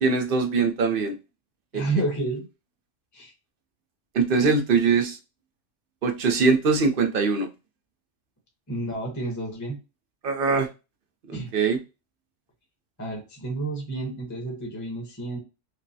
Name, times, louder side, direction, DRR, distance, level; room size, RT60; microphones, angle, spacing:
voice 1, 0.0-1.2 1.7-1.8 4.1-5.2 6.0-7.5 10.2-10.7 11.3-11.8, right 4 dB, 55° right, 0.8 m, -22 dB
voice 2, 1.7-2.4 3.1-3.3 8.7-9.8 11.3-11.5 13.0-15.4, right 2 dB, 15° left, 0.9 m, -30 dB
5.3 x 2.1 x 2.7 m
omnidirectional pair, 1.3 m